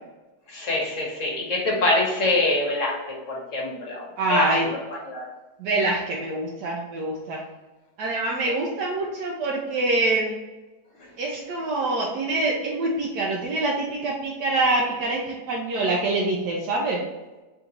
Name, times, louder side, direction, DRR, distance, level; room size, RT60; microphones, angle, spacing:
voice 1, 0.5-4.5 4.9-5.3 8.4-8.6 11.0-11.1, left 2 dB, 55° left, -2 dB, 1.1 m, -25 dB
voice 2, 4.2-4.7 5.6-7.4 8.0-10.4 11.2-17.0, right 2 dB, 75° right, -3 dB, 1.2 m, -25 dB
3.8 x 2.6 x 4.4 m, 1.1 s
omnidirectional pair, 1.8 m